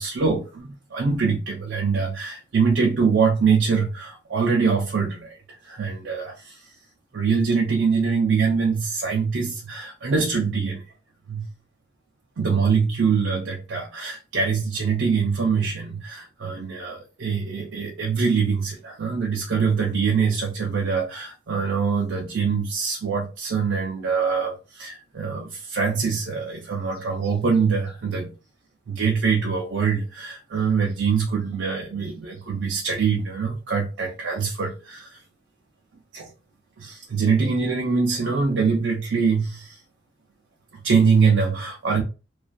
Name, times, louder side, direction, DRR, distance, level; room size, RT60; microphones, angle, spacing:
voice 1, 0.0-5.4 5.7-6.6 7.1-10.8 11.3-11.4 12.4-28.3 28.9-35.1 36.1-36.3 36.8-39.8 40.8-42.0, right 5 dB, 70° right, 0.5 m, -23 dB
2.4 x 2.3 x 2.2 m
head